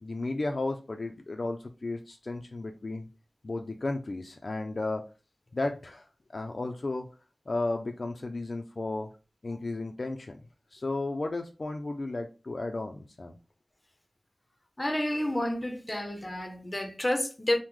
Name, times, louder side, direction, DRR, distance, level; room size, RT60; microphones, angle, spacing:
voice 1, 0.0-3.1 3.4-5.1 5.5-6.0 6.3-7.1 7.5-9.1 9.4-10.4 10.7-13.3, left 2 dB, 65° left, 0.4 m, -34 dB
voice 2, 14.8-17.6, left 1 dB, 25° left, 0.7 m, -30 dB
3.0 x 2.1 x 3.5 m
wide cardioid pair, 75°, 0 cm